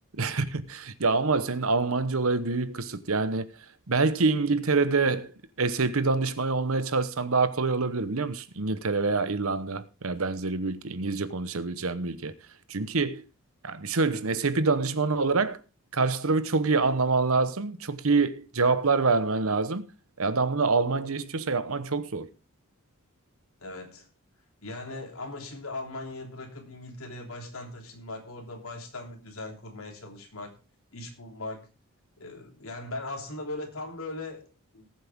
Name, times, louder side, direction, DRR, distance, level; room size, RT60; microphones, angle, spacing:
voice 1, 0.1-3.5 3.9-5.3 5.6-12.3 12.7-13.2 13.6-15.6 15.9-19.9 20.2-22.3, right 4 dB, 70° right, 1.0 m, -26 dB
voice 2, 23.6-24.1 24.6-30.5 30.9-31.7 32.2-34.9, left 2 dB, 70° left, 3.2 m, -39 dB
19.0 x 7.7 x 3.6 m
head